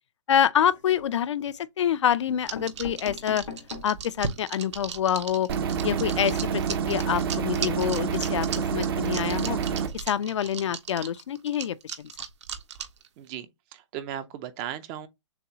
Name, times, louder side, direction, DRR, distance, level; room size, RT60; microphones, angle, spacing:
voice 1, 0.3-3.4 3.8-5.5 5.8-9.6 9.9-12.1, left 9 dB, 70° left, 0.5 m, -26 dB
sound 1, 0.5-1.2 1.9-2.0 2.3-4.1 4.6-4.7 4.9-5.0 5.3-5.4, left 6 dB, 90° left, 1.7 m, -42 dB
sound 2, 2.4-13.1, right 7 dB, 65° right, 1.0 m, -36 dB
sound 3, 5.5-9.9, right 7 dB, 50° right, 0.7 m, -28 dB
voice 2, 13.7-15.1, right 10 dB, 20° right, 0.4 m, -36 dB
6.9 x 2.3 x 2.8 m
hypercardioid pair, 155°, 16 cm